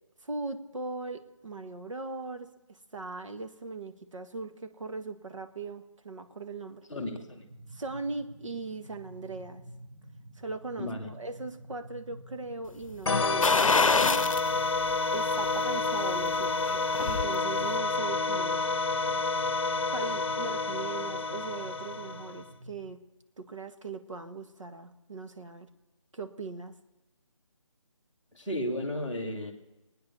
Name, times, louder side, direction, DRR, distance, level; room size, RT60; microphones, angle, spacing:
voice 1, 0.2-6.8 7.7-9.6 10.4-14.3 15.1-18.6 19.9-23.0 23.4-25.7 26.1-26.7, right 3 dB, 70° right, 7 dB, 1.7 m, -39 dB
voice 2, 6.9-7.4 10.8-11.1 28.3-29.5, left 1 dB, 5° right, -7 dB, 1.2 m, -34 dB
sound 1, 6.9-22.9, equal, 40° right, 1.8 m, -50 dB
sound 2, 13.1-22.5, left 3 dB, 55° left, 0.8 m, -29 dB
sound 3, 13.4-14.5 14.9-15.0 16.5-17.3 17.6-17.7, left 4 dB, 85° left, 0.6 m, -25 dB
20.0 x 9.4 x 6.9 m, 1.0 s
figure-of-eight pair, 165°, 17 cm